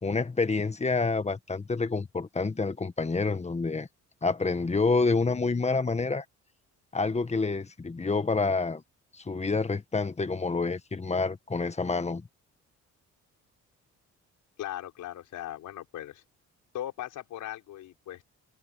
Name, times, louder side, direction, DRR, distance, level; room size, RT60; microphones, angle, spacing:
voice 1, 0.0-3.9 4.2-6.2 6.9-8.8 9.1-12.2, left 4 dB, 20° left, 1.7 m, -28 dB
voice 2, 14.6-16.2 16.7-18.2, left 12 dB, 80° left, 5.0 m, -38 dB
cardioid pair, 90°, 30 cm